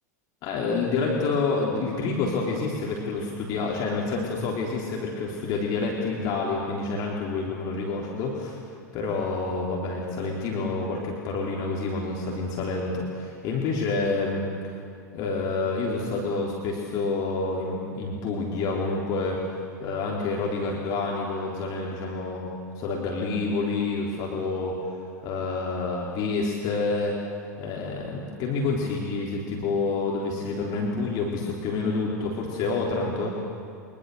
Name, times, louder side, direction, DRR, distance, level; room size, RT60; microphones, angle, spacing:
voice 1, 0.4-8.6 8.9-14.7 15.1-22.5 22.8-27.2 27.6-33.4, left 3 dB, 45° left, -3 dB, 3.7 m, -28 dB
24.0 x 21.5 x 6.8 m, 2.6 s
figure-of-eight pair, 85°, 9 cm